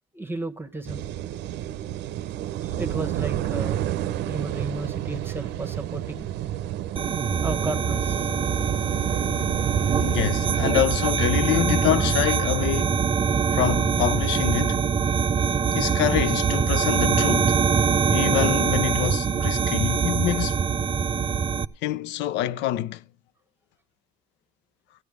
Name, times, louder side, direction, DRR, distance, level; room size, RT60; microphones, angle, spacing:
voice 1, 0.1-1.1 2.6-3.8 4.2-6.3 7.4-8.3, right 2 dB, 10° right, 1.2 m, -33 dB
sound 1, 0.8-10.7, right 12 dB, 70° right, 0.6 m, -30 dB
sound 2, 7.0-21.6, right 6 dB, 25° right, 0.5 m, -23 dB
voice 2, 10.0-13.0 13.5-14.8 15.7-17.6 18.1-20.6 21.8-23.0, left 13 dB, 70° left, 0.6 m, -26 dB
13.0 x 9.6 x 4.9 m
supercardioid pair, 70°, 19 cm